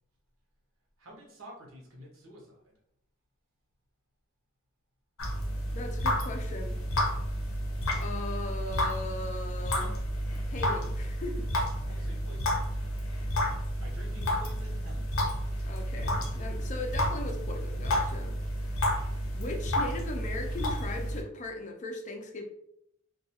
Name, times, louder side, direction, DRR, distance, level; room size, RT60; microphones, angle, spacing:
voice 1, 1.0-2.7 11.8-12.7 13.8-15.6, equal, 80° right, -1 dB, 0.8 m, -50 dB
sound 1, 5.2-21.2, equal, 80° left, 0.6 m, -31 dB
voice 2, 5.7-6.8 7.9-9.9 10.5-11.5 11.9-12.1 15.6-18.4 19.3-22.4, left 2 dB, 35° left, 3 dB, 0.4 m, -39 dB
2.3 x 2.2 x 2.7 m, 0.74 s
head